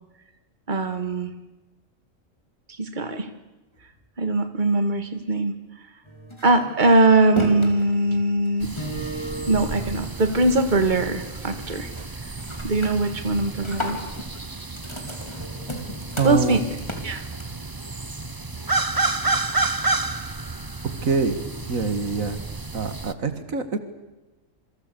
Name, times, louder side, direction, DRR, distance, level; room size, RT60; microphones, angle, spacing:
voice 1, 0.7-1.3 2.8-3.3 4.2-5.5 6.4-8.7 9.5-11.9 12.6-14.0 16.2-16.6 17.0-17.2, right 2 dB, 35° right, 8 dB, 2.0 m, -21 dB
sound 1, 6.0-10.6 10.9-11.3 11.6-12.1 12.4-17.7, equal, 20° left, 3.9 m, -35 dB
sound 2, 8.6-23.1, right 3 dB, 20° right, 0.8 m, -31 dB
voice 2, 16.2-16.6 21.0-22.4 22.7-23.8, right 4 dB, 90° right, 10 dB, 2.2 m, -25 dB
27.5 x 24.0 x 6.9 m, 1.1 s
omnidirectional pair, 1.4 m